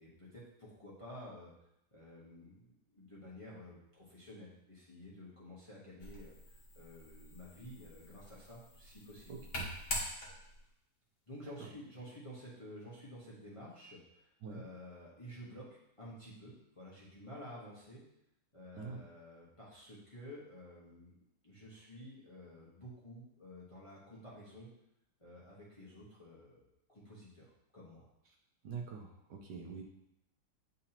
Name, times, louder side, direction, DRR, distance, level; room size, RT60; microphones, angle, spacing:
voice 1, 0.0-1.5 1.9-6.4 6.7-9.4 11.3-18.0 18.5-21.1 21.4-24.7 25.2-26.6 26.9-28.0, equal, 20° left, -6 dB, 1.1 m, -52 dB
sound 1, 6.0-10.7, left 1 dB, 45° left, 1.4 m, -44 dB
voice 2, 9.3-9.6 11.6-11.7 14.4-14.6 18.7-19.0 28.6-29.8, right 5 dB, 70° right, 1 dB, 1.3 m, -45 dB
8.5 x 3.9 x 2.9 m, 0.79 s
omnidirectional pair, 2.0 m